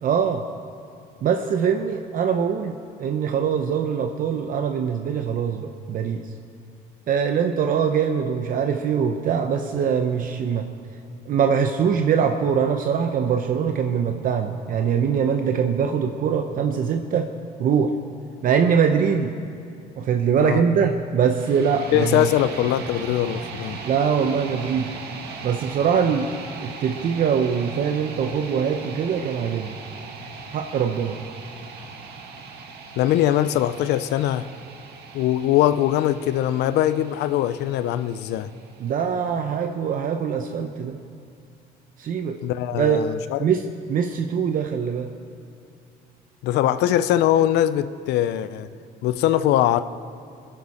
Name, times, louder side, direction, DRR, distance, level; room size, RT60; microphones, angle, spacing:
voice 1, 0.0-0.4 1.2-6.2 7.1-10.7 11.3-17.3 17.6-17.9 18.4-19.3 20.0-22.3 23.8-24.9 25.4-26.3 26.6-29.8 30.5-31.2 38.8-41.0 42.0-42.4 42.7-43.0 43.4-45.1, right 7 dB, 55° right, 5 dB, 0.8 m, -23 dB
sound 1, 21.2-39.2, right 4 dB, 75° right, 1.8 m, -39 dB
voice 2, 21.9-23.8 33.0-34.5 35.1-38.5 42.4-43.5 46.4-48.7 49.0-49.8, left 12 dB, 80° left, 13 dB, 0.6 m, -21 dB
21.0 x 11.0 x 4.3 m, 2.6 s
cardioid pair, 110°, 17 cm